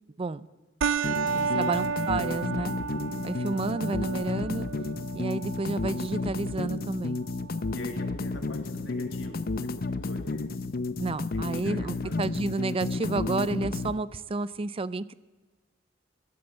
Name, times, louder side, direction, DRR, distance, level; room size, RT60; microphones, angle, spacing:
sound 1, 0.8-9.8, right 6 dB, 90° right, 0.5 m, -34 dB
sound 2, 1.0-14.0, left 3 dB, 50° left, 0.7 m, -32 dB
voice 1, 1.3-2.7 3.2-4.7 5.1-7.2 11.0-15.1, right 3 dB, 30° right, 17 dB, 0.4 m, -31 dB
voice 2, 7.7-10.6 11.3-12.3, left 1 dB, 85° left, 4 dB, 2.1 m, -44 dB
15.0 x 11.5 x 7.9 m, 1.2 s
head